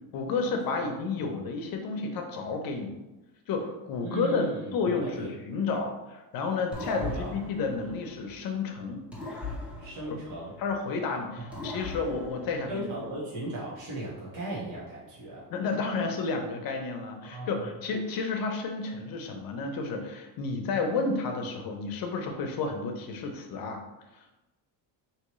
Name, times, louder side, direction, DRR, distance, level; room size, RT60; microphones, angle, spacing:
voice 1, 0.1-2.9 3.5-9.0 10.1-10.2 10.6-13.1 15.5-23.8 24.2-24.3, left 4 dB, 50° left, 3 dB, 0.8 m, -31 dB
voice 2, 4.0-4.7 5.0-5.3 5.7-5.8 6.8-7.3 9.8-10.5 11.5-11.8 12.7-15.4 17.2-17.6, right 2 dB, 45° right, -7 dB, 1.4 m, -37 dB
sound 1, 6.7-8.6 9.1-11.0 11.5-13.2, left 2 dB, 5° right, 0.7 m, -40 dB
4.6 x 3.1 x 3.1 m, 1.0 s
cardioid pair, 135°, 45 cm